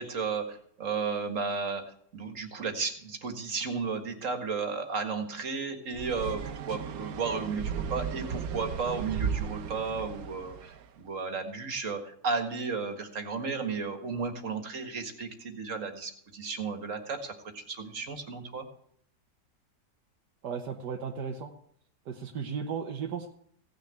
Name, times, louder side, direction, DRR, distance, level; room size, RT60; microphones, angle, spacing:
voice 1, 0.0-1.8 2.1-18.7, right 4 dB, 50° right, 5 dB, 2.1 m, -34 dB
sound 1, 5.9-10.8, right 7 dB, 65° right, 1.2 m, -35 dB
voice 2, 20.4-21.5 22.1-23.3, right 6 dB, 85° right, 2 dB, 1.7 m, -35 dB
17.0 x 6.6 x 8.9 m, 0.66 s
omnidirectional pair, 1.7 m